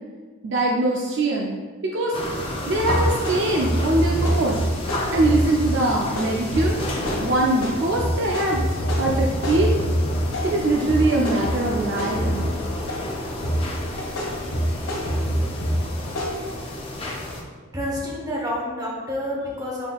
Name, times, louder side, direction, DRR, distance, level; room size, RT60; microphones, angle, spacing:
voice 1, 0.4-1.6 1.9-2.1 2.7-4.6 5.1-6.8 7.2-8.6 9.0-9.7 10.4-12.6, right 2 dB, 55° right, -1 dB, 0.4 m, -22 dB
sound 1, 2.1-17.4, left 1 dB, 25° left, 0.5 m, -31 dB
sound 2, 2.8-10.6 10.9-13.1 13.4-16.3, equal, 75° left, 1.4 m, -25 dB
voice 2, 17.7-19.9, left 1 dB, 15° right, -4 dB, 0.9 m, -28 dB
5.7 x 3.7 x 2.3 m, 1.4 s
head